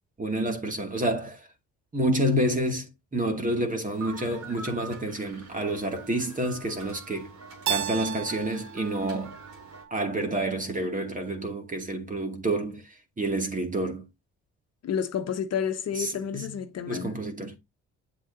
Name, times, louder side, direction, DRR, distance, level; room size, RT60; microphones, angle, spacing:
voice 1, 0.2-1.4 1.9-7.3 7.7-9.4 9.9-14.1 16.0-16.6 16.9-17.6, right 1 dB, 25° right, 2.5 m, -29 dB
sound 1, 3.9-9.8, right 3 dB, 70° right, 6.2 m, -45 dB
Keyboard (musical), 7.7-10.5, right 9 dB, 85° right, 1.2 m, -35 dB
voice 2, 14.8-17.1, left 7 dB, 55° left, 1.2 m, -30 dB
8.9 x 7.6 x 2.7 m
cardioid pair, 90°, 30 cm